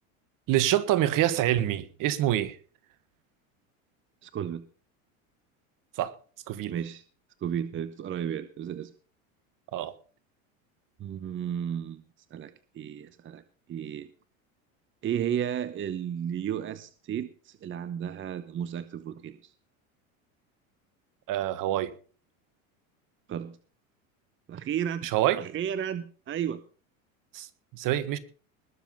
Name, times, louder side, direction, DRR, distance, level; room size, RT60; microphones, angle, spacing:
voice 1, 0.5-2.6 6.0-6.1 6.5-6.8 9.7-9.9 21.3-21.9 25.0-25.4 27.3-27.5 27.7-28.2, right 13 dB, 50° right, 1.5 m, -26 dB
voice 2, 4.2-4.6 6.7-7.0 7.4-8.9 11.0-12.0 12.3-13.4 13.7-14.1 15.0-19.5 23.3-23.6 24.5-25.1 25.4-26.6, right 9 dB, 30° right, 0.9 m, -33 dB
20.5 x 7.2 x 5.5 m
hypercardioid pair, 100°, 42 cm